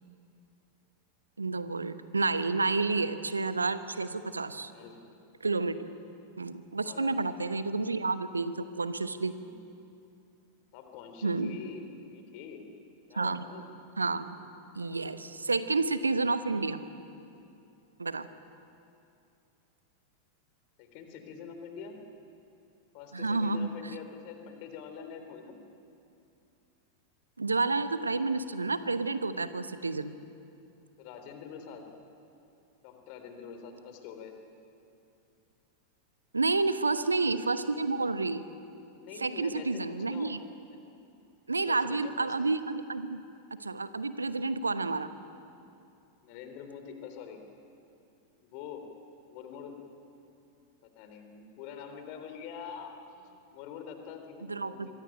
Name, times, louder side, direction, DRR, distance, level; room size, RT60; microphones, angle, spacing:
voice 1, 1.4-4.7 5.4-5.9 6.4-9.3 11.2-11.6 13.1-13.4 14.0-14.4 14.7-16.8 18.0-18.3 23.1-23.7 27.4-30.1 36.3-38.4 39.2-40.4 41.5-43.2 43.6-45.1 54.5-54.9, right 3 dB, 80° right, 12 dB, 1.0 m, -30 dB
voice 2, 4.6-5.2 6.8-7.2 9.2-9.6 10.7-12.7 13.1-13.7 20.8-22.0 22.9-25.6 31.0-31.9 32.8-34.3 38.9-40.4 40.7-40.8 41.5-42.3 46.2-47.4 48.4-48.9 49.3-49.8 51.0-54.9, left 6 dB, 45° left, 6 dB, 3.7 m, -45 dB
26.0 x 23.0 x 9.0 m, 2.6 s
figure-of-eight pair, 90°, 0 cm